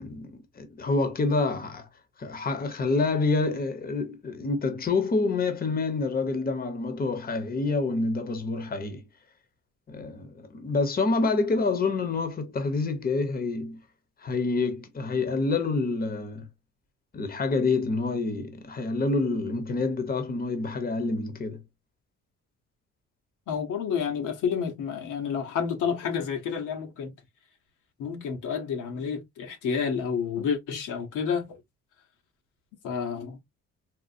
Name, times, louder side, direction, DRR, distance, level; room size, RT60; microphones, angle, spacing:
voice 1, 0.0-1.9 2.2-9.0 9.9-13.8 14.2-16.5 17.1-21.6, left 3 dB, 30° left, 0.8 m, -27 dB
voice 2, 23.5-27.1 28.0-31.6 32.8-33.4, left 7 dB, 85° left, 1.1 m, -30 dB
4.3 x 2.1 x 2.5 m
cardioid pair, 90°, 30 cm